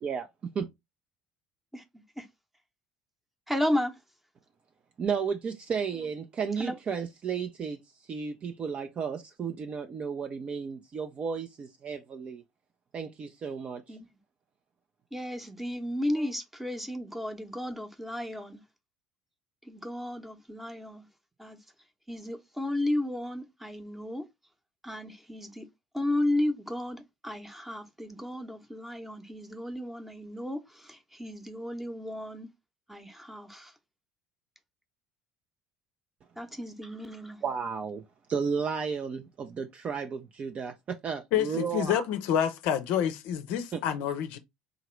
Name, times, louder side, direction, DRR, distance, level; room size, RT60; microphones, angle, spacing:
voice 1, 3.5-3.9 6.6-6.7 13.9-14.1 15.1-18.6 19.7-21.0 21.4-21.6 22.1-24.2 24.8-25.6 25.9-30.6 30.9-32.5 32.9-33.7 36.4-37.4, left 1 dB, 5° right, 0.8 m, -33 dB
voice 2, 5.0-7.8 8.1-12.4 12.9-14.0 16.2-16.3 37.4-38.0 38.3-42.0 43.7-43.8, right 6 dB, 35° right, 0.5 m, -33 dB
voice 3, 41.3-44.4, left 9 dB, 60° left, 0.5 m, -28 dB
3.8 x 2.9 x 3.0 m
figure-of-eight pair, 60°, 4 cm